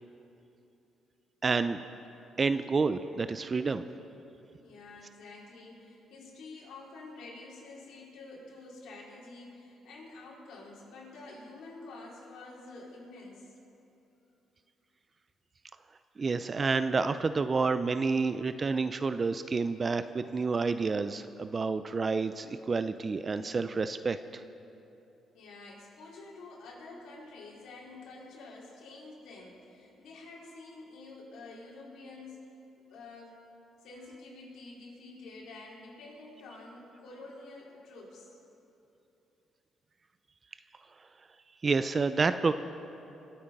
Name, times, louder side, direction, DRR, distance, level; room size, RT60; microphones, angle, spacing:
voice 1, 1.4-1.8 2.4-3.8 16.2-24.4 41.6-42.5, right 4 dB, 35° right, 11 dB, 0.5 m, -29 dB
voice 2, 4.6-13.5 25.3-32.4 32.9-33.4 33.8-38.4, left 3 dB, 80° left, -5 dB, 4.6 m, -48 dB
25.5 x 8.7 x 5.4 m, 2.9 s
cardioid pair, 90°, 0 cm